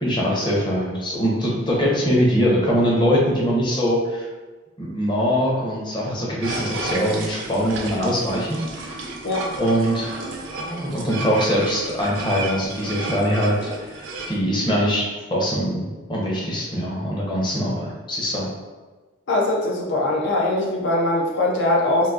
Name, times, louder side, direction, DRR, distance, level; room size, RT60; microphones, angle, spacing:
voice 1, 0.0-4.3 4.8-9.0 9.6-10.2 10.5-18.5, equal, 25° left, -4 dB, 0.6 m, -22 dB
sound 1, 6.4-14.4, right 2 dB, 85° right, 0.5 m, -32 dB
voice 2, 19.3-22.1, left 2 dB, 70° left, -2 dB, 0.5 m, -21 dB
3.8 x 2.5 x 2.4 m, 1.3 s
head